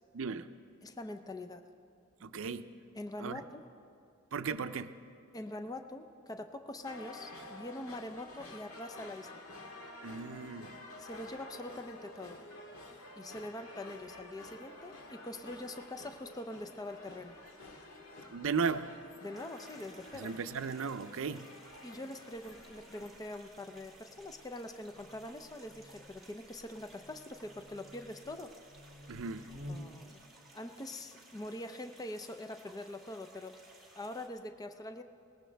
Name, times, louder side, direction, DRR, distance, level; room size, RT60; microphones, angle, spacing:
voice 1, 0.1-0.5 2.2-2.7 3.2-3.4 4.3-4.9 10.0-10.7 18.3-18.9 20.1-21.5 29.1-29.5, right 5 dB, 65° right, 10 dB, 0.5 m, -36 dB
voice 2, 0.8-1.6 2.9-3.7 5.3-9.4 11.0-12.4 13.2-17.4 19.2-20.3 21.8-28.5 29.7-30.2 30.5-33.6 34.0-35.0, left 1 dB, 15° left, 7 dB, 0.5 m, -44 dB
sound 1, 6.8-23.1, left 2 dB, 75° left, 1.8 m, -50 dB
sound 2, 19.3-34.3, right 2 dB, ahead, 2.2 m, -59 dB
Buzz, 22.3-30.1, left 1 dB, 40° right, 1.2 m, -53 dB
22.0 x 19.5 x 3.4 m, 2.5 s
head